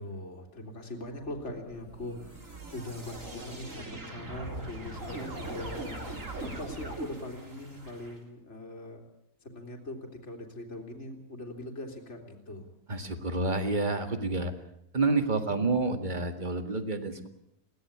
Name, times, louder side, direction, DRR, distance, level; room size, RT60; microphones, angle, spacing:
voice 1, 0.0-6.0 6.4-9.0 9.4-12.7, left 1 dB, 40° left, 2 dB, 3.4 m, -41 dB
sound 1, 1.1-8.2, right 2 dB, 45° right, 3.9 m, -41 dB
voice 2, 12.9-14.5 14.9-17.3, right 3 dB, 25° right, 7 dB, 2.0 m, -29 dB
21.5 x 17.5 x 8.6 m, 0.77 s
omnidirectional pair, 1.8 m